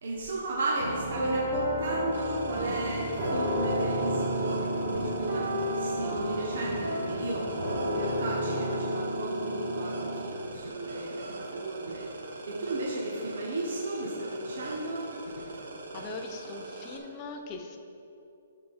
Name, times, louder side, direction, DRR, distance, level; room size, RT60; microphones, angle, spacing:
voice 1, 0.0-15.1, right 2 dB, 60° right, -4 dB, 1.4 m, -35 dB
sound 1, 0.8-10.3, equal, 30° right, 1.9 m, -31 dB
sound 2, 2.1-17.0, right 2 dB, 80° right, 1.2 m, -42 dB
voice 2, 15.9-17.8, left 3 dB, 20° left, 3 dB, 0.6 m, -40 dB
13.5 x 4.7 x 4.2 m, 2.7 s
hypercardioid pair, 165°, 0 cm